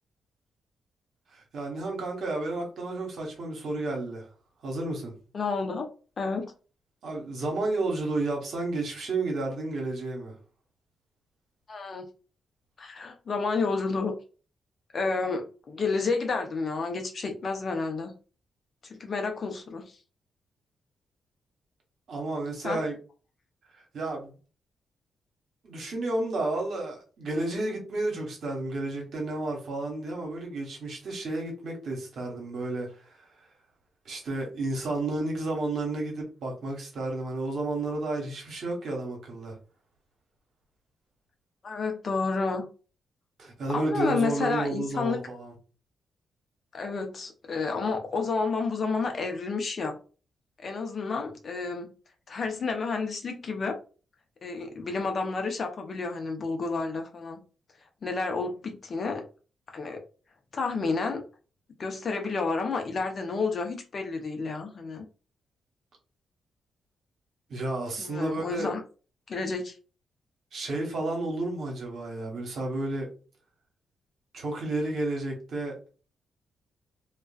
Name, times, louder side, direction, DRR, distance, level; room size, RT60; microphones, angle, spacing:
voice 1, 1.3-4.3 4.6-5.1 7.0-10.3 22.1-23.0 23.9-24.3 25.6-32.9 33.2-33.3 34.0-39.5 43.4-45.5 67.5-68.7 70.5-73.1 74.3-75.7, right 2 dB, 70° right, 1.1 m, -31 dB
voice 2, 5.3-5.9 6.2-6.5 11.7-12.1 12.8-14.1 14.9-18.1 18.8-20.0 22.6-22.8 41.6-42.7 43.7-45.2 46.7-50.0 50.6-51.9 52.3-53.8 54.4-57.4 58.0-59.2 59.7-60.0 60.5-61.2 61.8-65.0 68.0-68.8 69.3-69.8, left 4 dB, 55° left, 0.6 m, -30 dB
2.4 x 2.3 x 2.3 m
cardioid pair, 65°, 0 cm